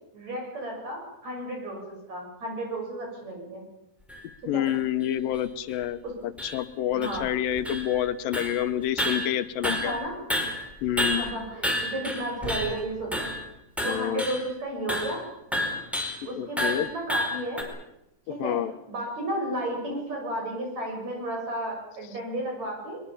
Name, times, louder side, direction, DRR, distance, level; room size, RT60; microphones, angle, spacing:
voice 1, 0.1-3.6 4.5-4.6 6.0-6.1 6.9-7.2 9.6-10.2 11.0-13.3 13.8-15.2 16.2-17.7 18.3-23.0, right 1 dB, 50° right, 1 dB, 8.1 m, -33 dB
sound 1, 4.1-4.2 4.7-4.8 5.3-5.4 5.7-5.8 6.4-6.6 7.0-8.1 8.3-8.6 9.0-10.0 10.3-12.8 13.1-13.5 13.8-14.5 14.9-15.2 15.5-16.2 16.6-17.6, equal, ahead, 4.7 m, -30 dB
voice 2, 4.5-9.9 10.8-11.2 13.8-14.3 16.4-16.9 18.4-18.7, left 11 dB, 85° left, 12 dB, 2.7 m, -28 dB
22.5 x 22.0 x 7.2 m, 0.86 s
omnidirectional pair, 4.0 m